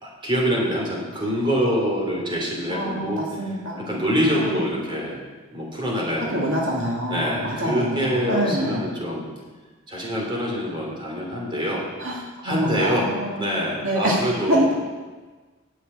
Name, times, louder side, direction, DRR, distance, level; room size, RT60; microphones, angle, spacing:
voice 1, 0.0-3.2 3.8-5.2 5.5-6.6 7.1-9.3 9.9-11.8 12.4-13.1 13.4-14.7, equal, 25° right, -2 dB, 3.3 m, -25 dB
voice 2, 2.7-3.9 4.3-4.6 6.3-8.9 12.0-12.1 12.4-13.4 13.8-14.2 14.5-14.7, equal, 70° right, -3 dB, 2.4 m, -25 dB
9.7 x 7.7 x 8.5 m, 1.3 s
head